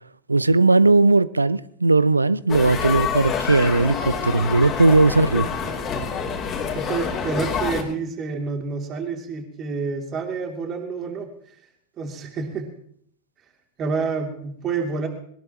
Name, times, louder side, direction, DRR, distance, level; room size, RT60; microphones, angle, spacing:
voice 1, 0.3-5.5, right 3 dB, 80° right, 0.5 m, -18 dB
sound 1, 2.5-7.8, left 6 dB, 30° left, 3.0 m, -27 dB
voice 2, 6.7-11.3 12.0-12.7 13.8-15.1, right 4 dB, 30° right, 2.7 m, -28 dB
22.0 x 19.0 x 2.9 m
figure-of-eight pair, 90°, 0 cm